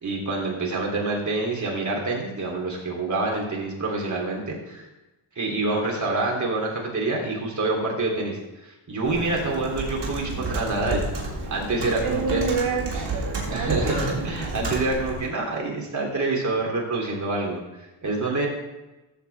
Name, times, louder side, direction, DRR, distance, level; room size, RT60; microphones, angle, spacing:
voice 1, 0.0-4.9 5.3-11.0 11.5-12.4 13.5-18.5, right 2 dB, 35° right, -1 dB, 3.2 m, -27 dB
Computer keyboard, 9.0-15.3, right 2 dB, 55° right, 3.2 m, -31 dB
voice 2, 12.0-13.7 14.0-14.3, right 5 dB, 70° right, 1 dB, 2.0 m, -28 dB
13.5 x 7.6 x 3.4 m, 1.0 s
cardioid pair, 100°, 48 cm